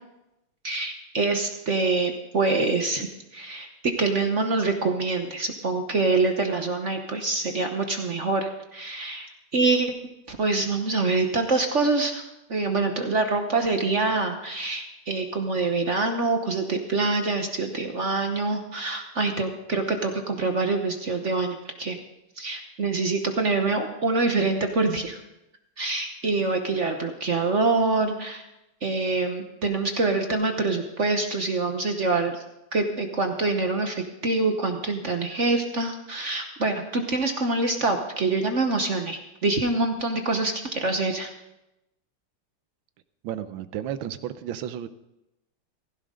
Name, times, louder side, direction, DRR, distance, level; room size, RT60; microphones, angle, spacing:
voice 1, 0.6-3.1 3.3-9.9 10.3-12.2 12.5-22.0 22.4-25.2 25.8-28.4 28.8-32.4 32.7-41.3, right 3 dB, 45° right, 5 dB, 1.0 m, -25 dB
voice 2, 43.2-44.9, right 10 dB, 70° right, 12 dB, 1.4 m, -33 dB
16.0 x 15.5 x 3.8 m, 0.92 s
omnidirectional pair, 2.4 m